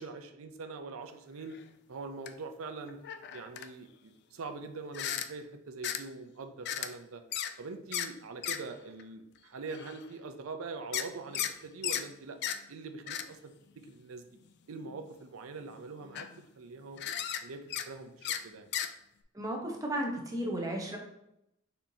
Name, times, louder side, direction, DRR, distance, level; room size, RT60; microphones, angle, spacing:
voice 1, 0.0-1.6 1.9-3.0 3.3-7.2 7.6-12.4 12.7-14.2 14.7-17.0 17.4-18.7, right 4 dB, 80° right, 7 dB, 0.5 m, -43 dB
sound 1, 1.5-1.6 2.3-2.4 2.9-3.7 4.9-5.3 5.8-6.0 6.7-6.9 7.3-7.5 7.9-8.1 8.4-8.6 9.0-9.1 9.7-10.0 10.9-11.5 11.8-12.1 12.4-12.6 13.1-13.2 13.9-14.0 14.9-15.1 15.7-15.8 16.0-16.4 17.0-17.4 17.7-17.9 18.2-18.4 18.7-18.9, left 10 dB, 55° left, 0.3 m, -35 dB
voice 2, 19.3-21.0, right 1 dB, 15° right, 0 dB, 0.8 m, -34 dB
4.5 x 4.3 x 2.7 m, 0.82 s
head